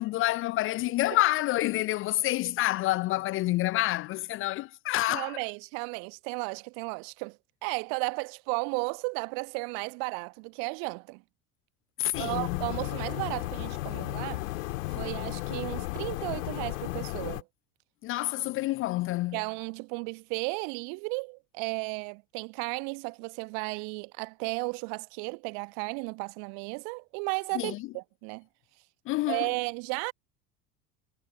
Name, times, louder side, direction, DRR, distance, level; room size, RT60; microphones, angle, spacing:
voice 1, 0.0-5.4 12.0-12.6 18.0-19.4 27.5-27.8 29.1-29.5, left 17 dB, 30° left, 0.5 m, -28 dB
voice 2, 5.1-11.2 12.2-14.4 14.9-17.4 19.3-28.5 29.3-30.1, right 40 dB or more, 50° right, 1.2 m, -34 dB
sound 1, 12.1-17.4, left 19 dB, 60° left, 2.1 m, -34 dB
figure-of-eight pair, 75°, 45 cm